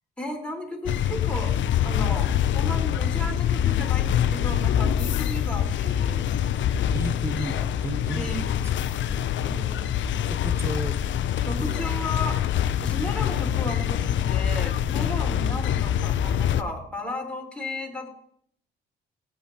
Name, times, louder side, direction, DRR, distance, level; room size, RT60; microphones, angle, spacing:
voice 1, 0.2-1.6 1.8-6.3 8.1-8.4 11.4-18.1, left 1 dB, 5° left, -2 dB, 4.2 m, -34 dB
sound 1, 0.9-16.6, left 10 dB, 65° left, 0.6 m, -25 dB
voice 2, 6.9-9.9 10.3-12.0 15.5-15.7, right 2 dB, 10° right, 13 dB, 0.7 m, -36 dB
17.0 x 9.3 x 2.9 m, 0.65 s
supercardioid pair, 65°, 21 cm